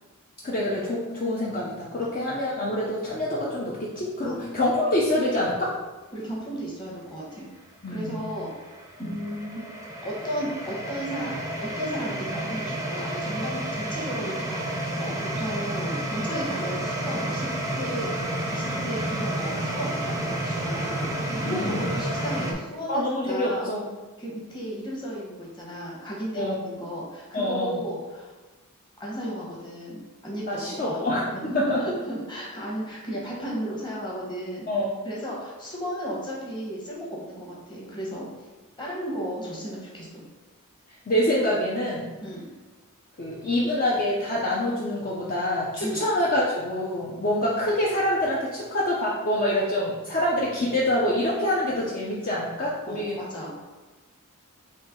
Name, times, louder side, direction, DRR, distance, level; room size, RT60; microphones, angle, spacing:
voice 1, 0.4-5.7 7.8-8.2 9.0-9.2 21.5-21.9 22.9-23.9 26.3-26.6 27.3-27.8 30.5-31.8 34.7-34.9 41.1-42.1 43.2-53.2, left 1 dB, 40° left, -5 dB, 0.6 m, -26 dB
voice 2, 6.1-7.4 7.9-8.5 9.0-9.6 10.0-11.3 11.6-17.5 17.7-18.1 18.5-23.6 24.2-28.3 29.0-31.0 31.3-34.7 35.0-38.3 38.8-40.2 42.2-42.5 45.8-46.0 52.9-53.6, equal, 20° left, -5 dB, 1.2 m, -34 dB
sound 1, 7.8-22.5, right 1 dB, 15° right, 0.6 m, -30 dB
4.4 x 3.1 x 3.7 m, 1.2 s
head